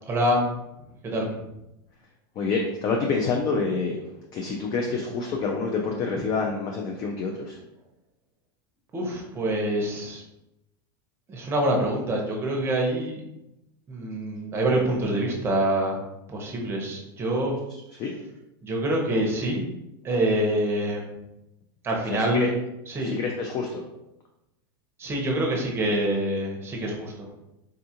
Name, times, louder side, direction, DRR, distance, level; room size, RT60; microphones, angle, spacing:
voice 1, 0.1-0.4 1.0-1.4 8.9-10.2 11.3-13.2 13.9-16.0 16.3-17.6 18.6-19.7 20.0-21.0 21.8-22.5 22.9-23.2 25.0-27.3, right 1 dB, 20° right, 0 dB, 0.7 m, -26 dB
voice 2, 2.4-7.6 18.0-18.1 22.1-22.5 23.0-23.9, left 4 dB, 30° left, 1 dB, 0.4 m, -27 dB
3.6 x 2.4 x 2.8 m, 0.89 s
supercardioid pair, 150°, 13 cm